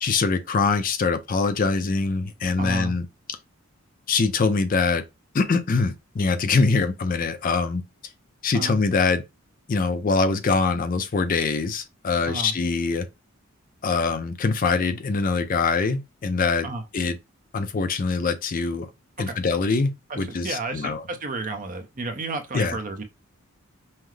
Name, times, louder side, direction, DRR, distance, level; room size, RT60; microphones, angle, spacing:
voice 1, 0.0-3.4 4.1-5.0 5.3-7.8 8.4-9.2 9.7-13.1 13.8-16.7 16.9-17.2 17.5-18.9 19.2-21.0 22.5-22.8, left 4 dB, 40° left, 0.4 m, -23 dB
voice 2, 2.6-2.9 8.5-8.8 12.3-12.5 16.6-16.8 19.3-19.4 20.1-23.0, right 3 dB, 35° right, 0.6 m, -32 dB
5.6 x 2.0 x 3.2 m
head